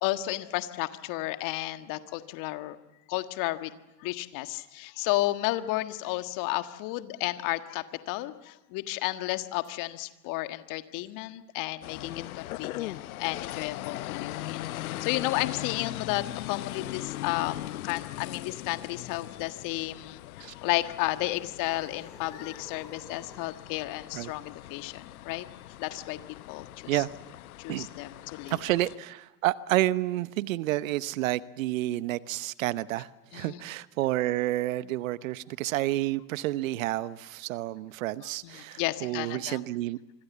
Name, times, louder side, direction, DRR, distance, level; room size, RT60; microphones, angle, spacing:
voice 1, 0.0-2.8 3.1-3.7 4.0-25.5 25.8-26.2 26.5-27.0 27.6-28.6 33.3-33.6 38.4-39.6, left 18 dB, 40° left, 9 dB, 1.7 m, -33 dB
sound 1, 11.8-29.0, left 15 dB, 60° left, 0.9 m, -40 dB
sound 2, 21.0-23.6, left 2 dB, 5° left, 3.1 m, -52 dB
voice 2, 28.5-40.0, right 16 dB, 55° right, 17 dB, 1.0 m, -30 dB
26.5 x 25.0 x 7.3 m, 1.0 s
figure-of-eight pair, 95°, 48 cm